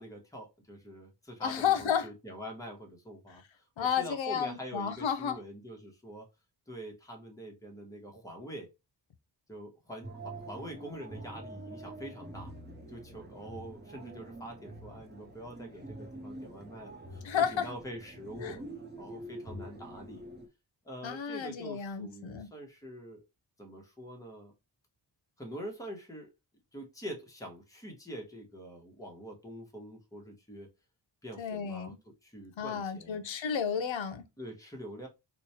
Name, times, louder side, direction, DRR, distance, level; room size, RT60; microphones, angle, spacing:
voice 1, 0.0-6.3 6.7-8.7 9.5-12.5 12.9-18.6 19.0-20.2 20.8-23.2 23.6-24.5 25.4-26.3 26.7-30.7 31.2-33.2 34.4-35.1, equal, 5° left, 0.9 m, -45 dB
voice 2, 1.4-2.1 3.8-5.4 17.2-17.6 18.4-18.6 21.0-22.5 31.4-32.0 32.6-34.2, left 7 dB, 85° left, 0.7 m, -32 dB
sound 1, 10.0-20.5, right 1 dB, 25° right, 0.7 m, -46 dB
3.1 x 2.2 x 4.1 m
wide cardioid pair, 160°, 45 cm